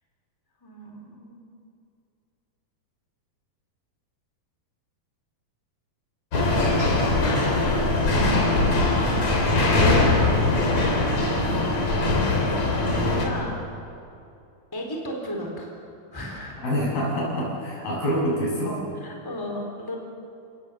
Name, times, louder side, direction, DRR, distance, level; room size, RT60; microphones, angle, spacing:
voice 1, 0.6-1.4 8.1-9.1 9.5-9.7 12.5-13.6 14.7-15.8 16.1-16.6 18.9-20.0, left 1 dB, 5° left, 0 dB, 3.6 m, -35 dB
sound 1, 6.3-13.2, left 2 dB, 50° left, 4.5 m, -21 dB
voice 2, 16.6-18.8, equal, 75° left, -4 dB, 8.7 m, -26 dB
29.5 x 19.0 x 7.6 m, 2.6 s
omnidirectional pair, 4.2 m